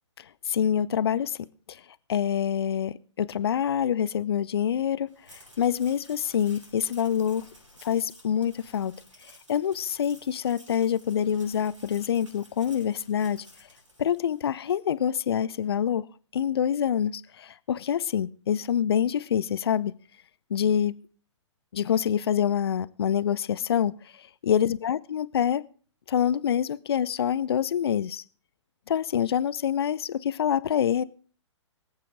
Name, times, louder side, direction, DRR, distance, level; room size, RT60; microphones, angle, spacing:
voice 1, 0.2-1.4 1.7-1.8 2.1-7.5 7.8-8.9 9.2-13.5 14.0-16.1 16.3-19.9 20.5-21.0 21.7-25.6 26.1-28.2 28.9-31.0, left 9 dB, 55° left, 0.6 m, -26 dB
sound 1, 5.1-14.6, left 1 dB, 80° right, 5.9 m, -53 dB
23.5 x 8.4 x 3.9 m
figure-of-eight pair, 120°, 16 cm